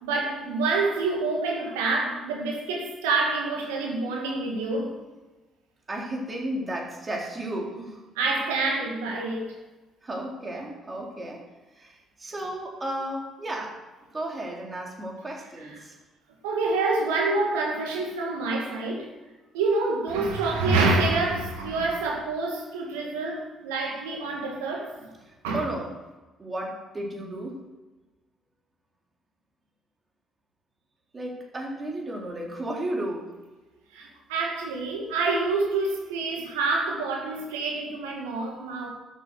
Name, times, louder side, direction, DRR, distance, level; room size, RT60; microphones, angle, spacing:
voice 1, 0.0-4.9 8.2-9.5 16.4-19.1 19.5-24.9 25.4-25.6 33.9-38.9, right 3 dB, 80° right, -1 dB, 2.1 m, -27 dB
voice 2, 5.9-8.0 10.0-11.4 11.8-13.8 14.1-16.0 25.2-25.9 26.4-27.6 31.1-33.4, right 1 dB, 30° right, -1 dB, 3.8 m, -34 dB
12.5 x 7.7 x 6.6 m, 1.2 s
hypercardioid pair, 50°, 0 cm